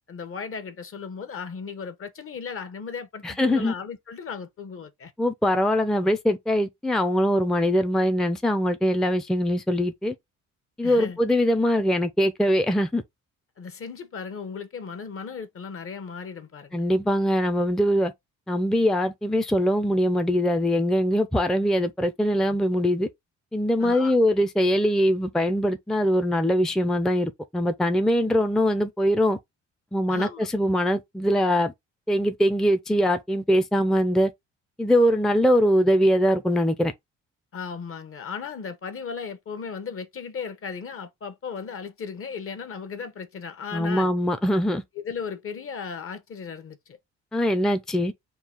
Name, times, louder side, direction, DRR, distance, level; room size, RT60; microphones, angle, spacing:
voice 1, 0.1-5.1 10.8-11.2 13.6-16.8 23.8-24.2 30.1-30.5 37.5-44.1 45.0-47.0, left 6 dB, 45° left, 1.0 m, -36 dB
voice 2, 3.2-3.7 5.2-10.1 10.8-13.0 16.7-18.1 18.5-23.1 23.5-29.4 29.9-31.7 32.1-34.3 34.8-36.9 43.7-44.8 47.3-48.1, equal, ahead, 0.5 m, -22 dB
3.8 x 2.3 x 4.4 m
cardioid pair, 90°, 30 cm